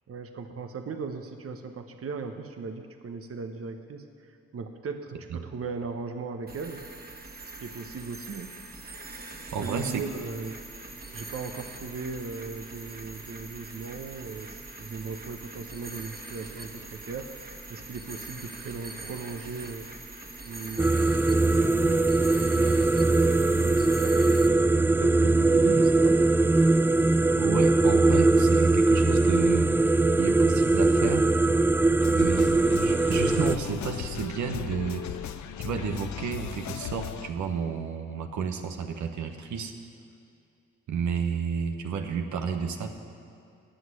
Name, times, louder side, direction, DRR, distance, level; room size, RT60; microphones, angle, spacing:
voice 1, 0.1-6.8 7.6-8.5 9.6-10.6 11.1-17.3 17.7-19.9 20.4-24.2 25.0-26.2, right 4 dB, 50° right, 7 dB, 1.0 m, -38 dB
sound 1, 6.5-24.5, right 2 dB, 30° right, 1.8 m, -43 dB
voice 2, 9.5-10.1 27.4-29.7 30.2-31.3 32.1-39.7 40.9-42.9, right 6 dB, 75° right, 5 dB, 1.1 m, -31 dB
sound 2, 20.8-33.6, right 2 dB, 10° right, 0.3 m, -21 dB
sound 3, 32.0-37.3, left 10 dB, 75° left, 0.7 m, -37 dB
16.0 x 6.2 x 9.8 m, 2.4 s
supercardioid pair, 50°, 30 cm